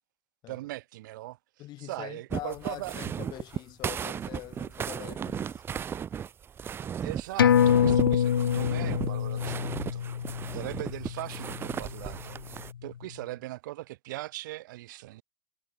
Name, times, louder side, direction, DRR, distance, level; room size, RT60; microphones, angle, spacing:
voice 1, 0.5-1.4 1.8-2.9 7.0-10.1 10.5-12.4 12.8-15.2, right 17 dB, 60° right, 6.2 m, -40 dB
voice 2, 1.6-5.9, left 16 dB, 35° left, 3.7 m, -43 dB
sound 1, 2.3-12.7, right 8 dB, 20° right, 0.6 m, -36 dB
sound 2, 7.4-12.3 12.7-12.8, left 9 dB, 75° left, 1.1 m, -26 dB
hypercardioid pair, 105°, 12 cm